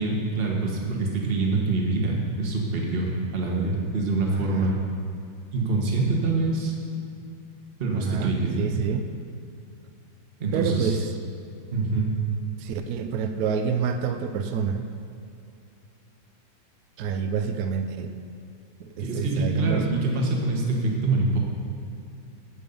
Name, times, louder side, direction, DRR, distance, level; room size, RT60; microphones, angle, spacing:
voice 1, 0.0-4.8 5.5-6.8 7.8-8.7 10.4-10.9 11.7-12.1 19.0-21.4, right 3 dB, 35° right, -1 dB, 1.4 m, -25 dB
voice 2, 4.3-4.8 7.9-9.1 10.5-11.1 12.6-14.9 17.0-18.1 18.8-19.8, right 6 dB, 70° right, 8 dB, 0.9 m, -28 dB
15.5 x 5.4 x 5.4 m, 2.5 s
omnidirectional pair, 2.1 m